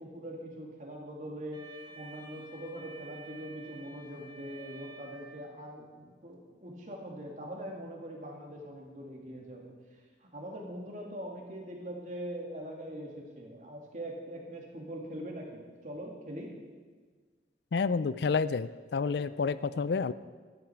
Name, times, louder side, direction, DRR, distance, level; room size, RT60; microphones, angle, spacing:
voice 1, 0.0-9.7 10.2-16.5, equal, 45° right, -1 dB, 2.6 m, -42 dB
Wind instrument woodwind instrument, 1.5-5.7, right 2 dB, 30° right, 2.1 m, -50 dB
voice 2, 17.7-20.1, left 5 dB, 70° left, 16 dB, 0.4 m, -29 dB
16.0 x 12.5 x 4.6 m, 1.5 s
head